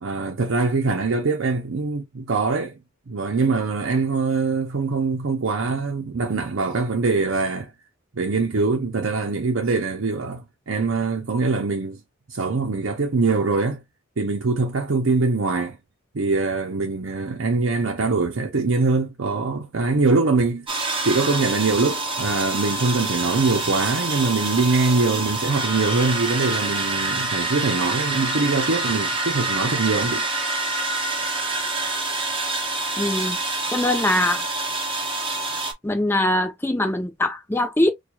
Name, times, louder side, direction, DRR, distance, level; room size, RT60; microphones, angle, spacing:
voice 1, 0.0-2.8 3.1-7.7 8.1-12.0 12.3-13.8 14.2-15.8 16.1-20.7 21.0-30.2, right 3 dB, 70° right, 0.7 m, -23 dB
sound 1, 20.7-35.7, right 2 dB, 25° right, 0.8 m, -26 dB
voice 2, 33.0-33.4 33.7-34.4 35.8-37.9, left 1 dB, 10° left, 0.6 m, -22 dB
4.5 x 2.3 x 2.3 m
head